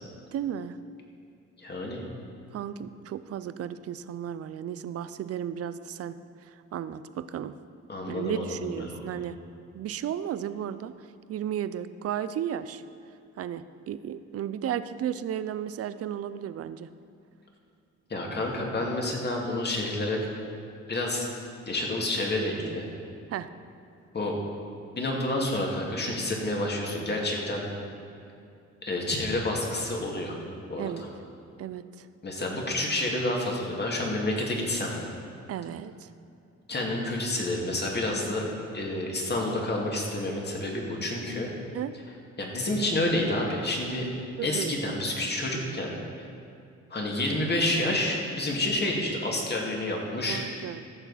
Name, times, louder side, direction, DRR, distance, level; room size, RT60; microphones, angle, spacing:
voice 1, 0.3-0.8 2.5-6.2 6.4-7.5 8.1-9.3 9.7-10.9 11.3-12.8 13.4-16.9 23.3-23.5 30.8-31.0 31.6-32.1 35.5-36.1 41.7-41.9 44.4-44.7 50.3-50.8, right 10 dB, 50° right, 13 dB, 0.5 m, -34 dB
voice 2, 1.6-2.0 7.9-9.2 18.1-20.2 20.9-21.3 21.7-22.9 24.1-24.3 25.0-27.6 28.8-30.4 30.7-30.9 32.2-34.9 36.7-41.5 42.4-44.1 44.4-45.9 46.9-50.4, left 1 dB, 35° left, -1 dB, 2.2 m, -29 dB
15.0 x 6.9 x 4.2 m, 2.5 s
cardioid pair, 90°, 30 cm